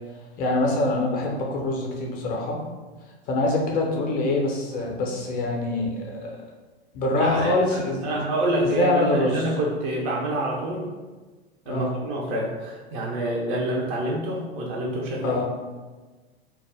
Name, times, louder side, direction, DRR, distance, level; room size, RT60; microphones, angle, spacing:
voice 1, 0.4-2.6 3.3-6.3 6.9-8.2 8.6-9.5 11.7-11.9 15.2-15.4, left 2 dB, 25° left, 0 dB, 0.6 m, -24 dB
voice 2, 7.2-7.6 8.0-10.9 11.7-15.4, right 1 dB, 30° right, -2 dB, 0.4 m, -27 dB
2.2 x 2.0 x 3.2 m, 1.3 s
figure-of-eight pair, 95°, 32 cm